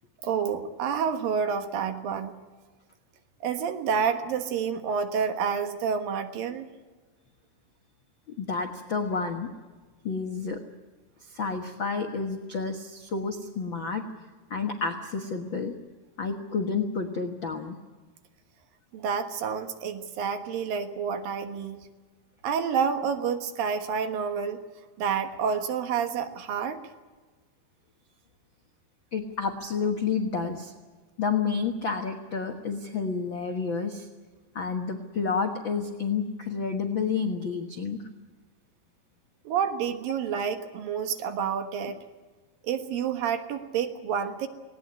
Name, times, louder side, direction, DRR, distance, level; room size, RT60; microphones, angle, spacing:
voice 1, 0.2-2.3 3.4-6.7 18.9-21.8 22.4-24.6 25.0-26.8 39.4-42.0 42.6-44.5, right 6 dB, 65° right, 8 dB, 2.8 m, -29 dB
voice 2, 8.4-9.5 10.0-10.6 11.3-14.0 14.5-15.7 16.2-17.8 29.1-30.7 31.2-34.1 34.5-38.0, left 5 dB, 80° left, 4 dB, 1.0 m, -30 dB
19.0 x 18.5 x 9.7 m, 1.3 s
omnidirectional pair, 4.7 m